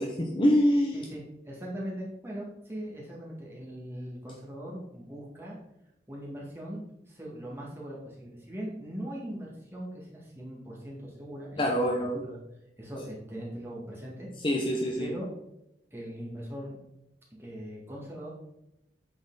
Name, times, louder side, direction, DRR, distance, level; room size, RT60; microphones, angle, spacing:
voice 1, 0.0-0.9 11.6-12.2 14.4-15.1, equal, 30° left, 1 dB, 0.7 m, -25 dB
voice 2, 0.9-5.6 6.1-6.8 7.1-12.4 12.8-14.3 15.0-15.3 15.9-16.8 17.4-18.3, equal, 15° right, -4 dB, 1.9 m, -40 dB
8.5 x 4.4 x 3.9 m, 0.88 s
head